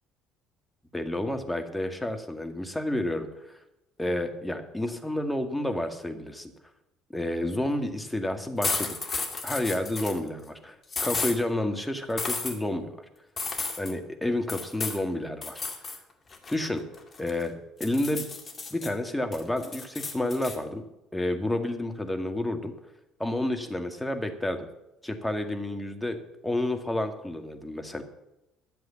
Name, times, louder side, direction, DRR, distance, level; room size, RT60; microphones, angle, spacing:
voice 1, 0.9-3.6 4.0-6.5 7.1-9.0 9.4-10.7 11.0-12.9 13.8-15.6 16.5-16.8 17.2-18.2 18.7-20.8 21.1-22.7 23.2-24.7 25.0-26.2 26.4-28.0, left 1 dB, 10° left, 5 dB, 2.0 m, -30 dB
sound 1, 8.6-10.2 10.9-11.4 12.2-12.6 13.4-13.9 14.5-15.0 15.4-16.0 16.3-17.4 17.8-18.9 19.3-20.6, left 4 dB, 40° left, 2.2 m, -32 dB
12.0 x 7.6 x 7.2 m, 0.92 s
hypercardioid pair, 60°, 0 cm